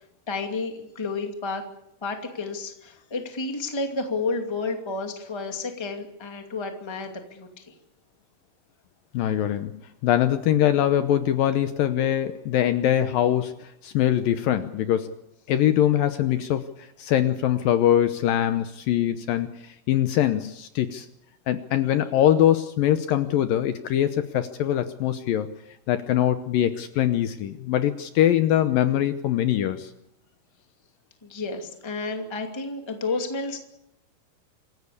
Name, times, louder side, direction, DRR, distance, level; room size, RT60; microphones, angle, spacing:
voice 1, 0.3-1.6 2.0-7.6 31.2-33.6, left 3 dB, 10° left, 4 dB, 1.5 m, -31 dB
voice 2, 9.1-9.7 10.0-15.1 15.5-21.1 21.5-25.5 25.9-29.9, left 11 dB, 70° left, 10 dB, 2.4 m, -23 dB
26.5 x 15.0 x 8.5 m, 0.83 s
omnidirectional pair, 4.6 m